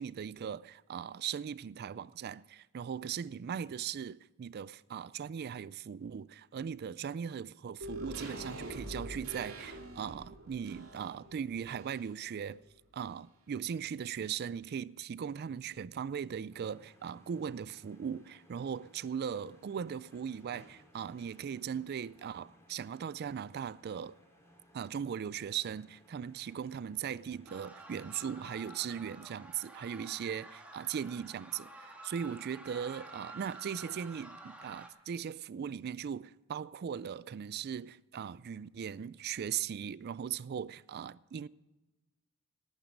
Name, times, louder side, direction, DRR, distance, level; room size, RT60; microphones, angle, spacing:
voice 1, 0.0-12.6 12.9-24.2 24.7-41.5, right 8 dB, 50° right, 0.3 m, -39 dB
sound 1, 7.8-12.3 12.6-12.7, right 1 dB, 90° right, 3.1 m, -45 dB
sound 2, 16.5-28.6, equal, 15° left, 3.0 m, -63 dB
sound 3, 27.5-34.9, right 2 dB, 5° right, 1.6 m, -51 dB
18.0 x 9.1 x 5.2 m
head